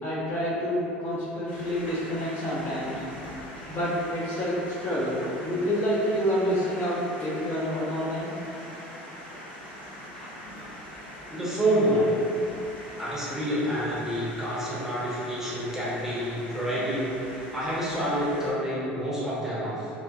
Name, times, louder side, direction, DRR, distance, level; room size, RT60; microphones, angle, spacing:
voice 1, 0.0-3.0 3.7-8.3, equal, 40° left, -8 dB, 0.7 m, -28 dB
sound 1, 1.5-18.5, equal, 90° left, 0.8 m, -42 dB
voice 2, 11.3-12.1 13.0-17.2 17.5-19.9, right 1 dB, 10° right, -9 dB, 0.9 m, -28 dB
2.9 x 2.1 x 2.4 m, 2.7 s
hypercardioid pair, 70°, 6 cm